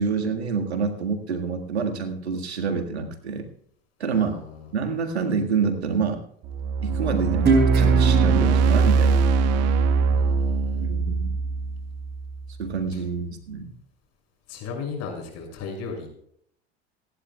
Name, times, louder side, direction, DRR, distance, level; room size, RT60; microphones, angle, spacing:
voice 1, 0.0-3.5 4.0-4.4 4.7-6.2 6.8-9.2 10.8-11.4 12.6-13.7, right 5 dB, 85° right, 5 dB, 1.8 m, -27 dB
sound 1, 6.4-12.6, right 5 dB, 50° right, 1.4 m, -22 dB
Guitar, 7.5-10.7, right 4 dB, 35° right, 4.5 m, -25 dB
voice 2, 10.1-10.8 14.5-16.1, left 5 dB, 50° left, 2 dB, 6.3 m, -35 dB
27.5 x 11.5 x 2.3 m, 0.69 s
hypercardioid pair, 75°, 32 cm